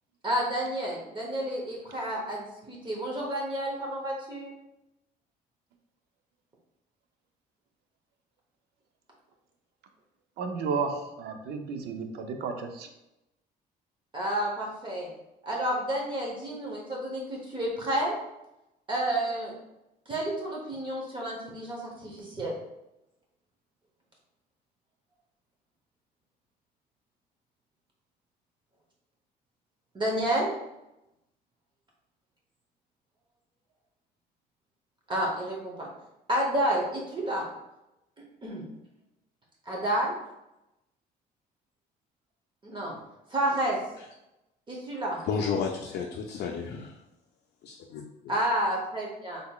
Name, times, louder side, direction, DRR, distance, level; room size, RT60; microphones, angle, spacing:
voice 1, 0.2-4.5 14.1-15.1 15.4-18.2 18.9-19.5 20.1-22.5 29.9-30.5 35.1-35.9 36.3-37.4 38.4-38.7 39.7-40.1 42.6-42.9 43.3-43.8 44.7-45.3 48.3-49.4, right 1 dB, 30° right, -2 dB, 0.9 m, -30 dB
voice 2, 10.4-12.9, right 5 dB, 75° right, 6 dB, 0.6 m, -32 dB
voice 3, 45.2-47.0 47.6-48.3, left 6 dB, 70° left, 0 dB, 0.5 m, -32 dB
3.7 x 3.4 x 2.3 m, 0.90 s
cardioid pair, 110°, 17 cm